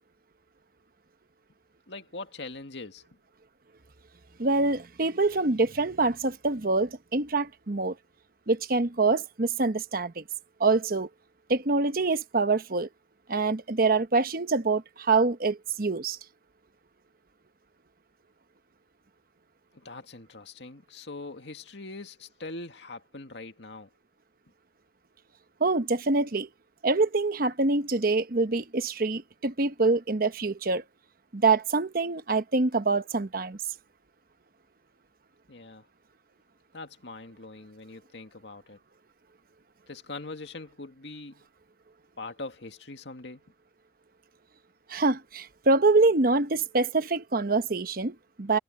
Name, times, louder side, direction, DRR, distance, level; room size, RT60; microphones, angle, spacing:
voice 1, 1.9-3.0 19.7-23.9 35.5-35.9 36.7-38.8 39.9-41.4 42.2-43.4, left 3 dB, 75° left, 2.0 m, -42 dB
voice 2, 4.4-7.9 8.5-10.2 10.6-11.1 11.5-12.9 13.3-16.2 25.6-26.5 26.8-30.8 31.3-33.6 44.9-48.6, right 3 dB, 55° right, 1.0 m, -25 dB
head